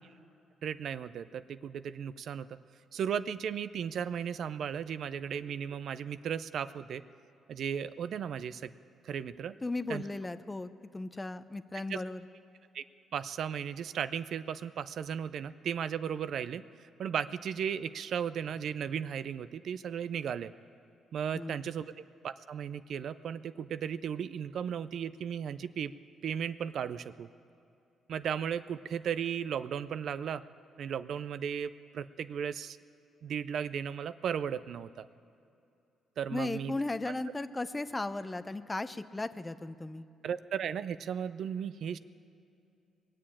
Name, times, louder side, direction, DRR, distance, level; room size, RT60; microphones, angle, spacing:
voice 1, 0.6-2.6 2.9-7.0 7.5-8.7 9.0-9.6 9.9-10.0 11.9-12.0 12.7-12.8 13.1-20.5 21.1-21.9 22.2-25.9 26.2-27.3 28.1-30.4 30.8-32.8 33.2-35.1 36.2-36.7 40.2-42.0, right 8 dB, 65° right, 13 dB, 0.4 m, -35 dB
voice 2, 9.6-12.2 21.3-21.7 36.3-40.0, left 2 dB, 20° left, 12 dB, 0.6 m, -36 dB
20.5 x 7.6 x 8.6 m, 2.7 s
cardioid pair, 90°, 0 cm